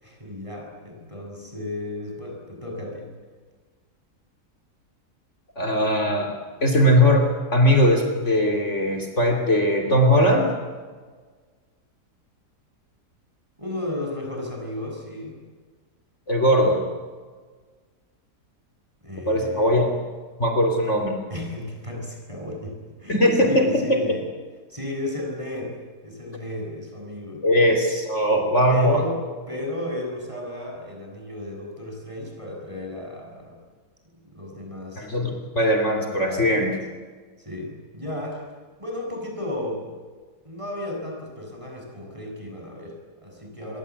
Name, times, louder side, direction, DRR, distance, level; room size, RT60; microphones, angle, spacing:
voice 1, 0.0-3.1 13.6-15.4 19.0-19.8 21.3-23.2 23.4-24.3 24.7-27.7 28.7-33.6 34.2-35.1 36.3-36.7 37.4-38.5 38.8-39.9 40.4-43.8, left 1 dB, 20° right, 0 dB, 7.2 m, -34 dB
voice 2, 5.6-6.3 6.6-10.5 16.3-16.8 19.3-19.9 20.4-21.2 23.1-24.0 27.4-29.0 35.0-36.7, equal, 45° left, 2 dB, 3.3 m, -20 dB
26.0 x 22.5 x 8.4 m, 1.5 s
omnidirectional pair, 1.7 m